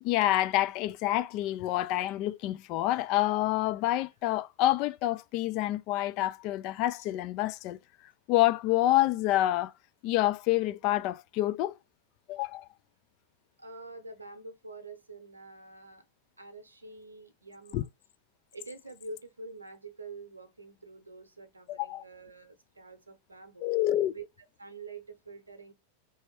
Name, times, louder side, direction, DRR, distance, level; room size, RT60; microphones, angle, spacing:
voice 1, 0.0-7.8 8.3-9.7 10.0-11.8 12.3-12.7 17.7-17.8 21.7-22.0 23.6-24.1, left 15 dB, 40° left, 0.3 m, -27 dB
voice 2, 13.6-16.0 16.4-17.9 18.5-23.7 24.1-24.2 24.6-25.7, right 3 dB, 80° right, 0.7 m, -46 dB
3.3 x 2.7 x 3.0 m
figure-of-eight pair, 90°, 0 cm